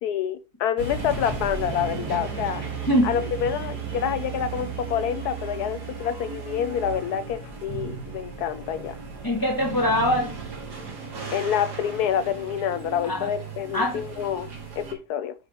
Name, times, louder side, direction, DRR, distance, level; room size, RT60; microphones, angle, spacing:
voice 1, 0.0-2.6 3.0-9.0 11.3-14.5 14.8-15.3, left 9 dB, 80° left, 1.2 m, -27 dB
sound 1, 0.8-14.9, right 5 dB, 85° right, 2.8 m, -35 dB
voice 2, 2.9-3.3 9.2-10.3 13.0-13.3 13.7-14.0, equal, 10° left, 2.4 m, -23 dB
9.6 x 6.4 x 3.1 m
omnidirectional pair, 1.7 m